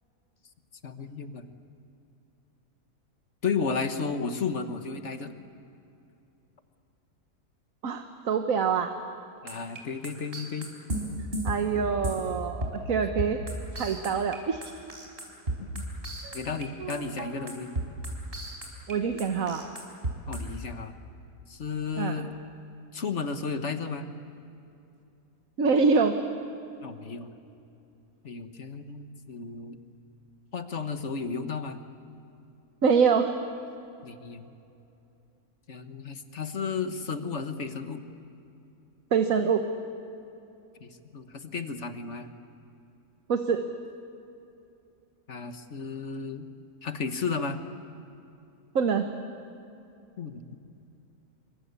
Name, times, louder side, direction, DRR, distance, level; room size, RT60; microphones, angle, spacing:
voice 1, 0.8-1.4 3.4-5.3 9.4-10.7 15.6-15.8 16.3-17.7 20.2-21.0 21.5-22.3 22.9-24.1 26.8-27.3 28.2-29.8 30.5-31.8 34.0-34.5 35.7-38.0 40.8-42.3 45.3-46.4 46.8-47.6 50.2-50.4, left 5 dB, 50° left, 8 dB, 1.6 m, -33 dB
voice 2, 7.8-8.9 11.4-13.4 13.7-14.7 16.2-16.4 16.8-17.1 18.9-19.7 22.0-22.2 25.6-26.2 32.8-33.3 39.1-39.7 43.3-43.6 48.7-49.1, right 5 dB, 65° right, 6 dB, 1.5 m, -25 dB
sound 1, 9.5-12.3 12.6-12.9 13.2-14.4 14.6-16.6 16.9-18.9 19.2-20.4, right 1 dB, 40° right, 4.8 m, -33 dB
27.5 x 24.5 x 8.4 m, 2.7 s
omnidirectional pair, 1.6 m